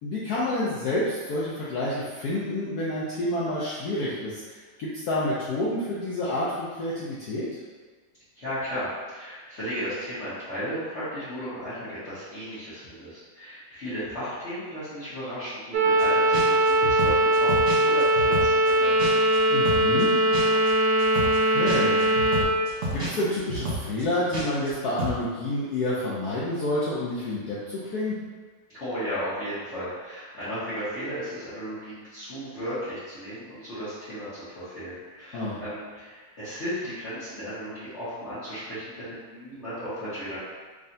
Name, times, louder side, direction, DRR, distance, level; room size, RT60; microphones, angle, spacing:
voice 1, 0.0-7.5 19.5-20.1 21.2-22.0 22.9-28.2 35.3-35.6, left 1 dB, 70° left, -8 dB, 1.0 m, -29 dB
voice 2, 8.3-19.0 28.7-40.4, equal, 40° left, -15 dB, 1.2 m, -35 dB
sound 1, 15.7-22.4, right 1 dB, 75° right, 1.1 m, -21 dB
sound 2, 16.0-16.1 16.3-19.4 19.7-24.7 25.0-25.2, right 1 dB, 45° right, 1.2 m, -31 dB
3.6 x 3.2 x 2.6 m, 1.4 s
omnidirectional pair, 2.1 m